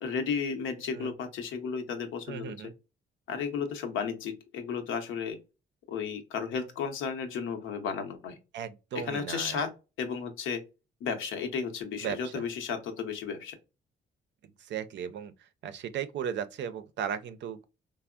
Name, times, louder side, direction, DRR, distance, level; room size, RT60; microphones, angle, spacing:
voice 1, 0.0-2.5 3.3-5.4 5.9-8.3 9.1-9.7 10.0-10.6 11.0-13.5, left 6 dB, 85° left, 0.8 m, -33 dB
voice 2, 2.3-2.7 8.5-9.7 12.0-12.4 14.6-17.6, right 8 dB, 65° right, 0.4 m, -36 dB
3.4 x 2.0 x 2.3 m
cardioid pair, 90°, 20 cm